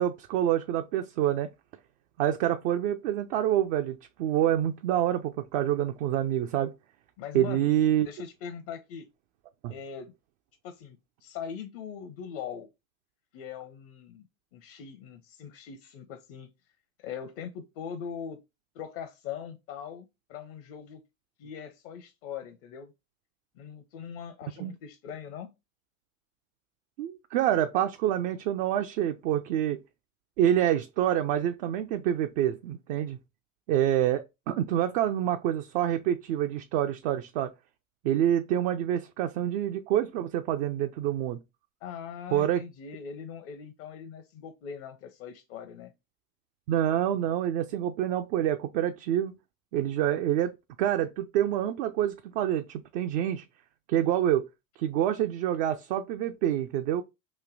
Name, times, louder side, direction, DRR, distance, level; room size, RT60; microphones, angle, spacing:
voice 1, 0.0-1.5 2.2-6.7 7.3-8.1 9.6-9.7 24.6-24.7 27.0-29.8 30.4-33.2 33.7-37.5 38.0-41.4 42.3-42.6 46.7-49.3 49.7-53.5 53.9-54.5 54.8-57.0, right 11 dB, 60° right, 0.5 m, -27 dB
voice 2, 7.2-7.7 8.0-9.1 9.7-10.1 10.6-12.7 13.3-14.3 14.5-16.5 17.0-18.4 18.7-21.0 21.4-22.9 23.6-25.5 41.8-45.9, left 7 dB, 60° left, 0.8 m, -41 dB
3.2 x 2.6 x 3.8 m
hypercardioid pair, 75°, 40 cm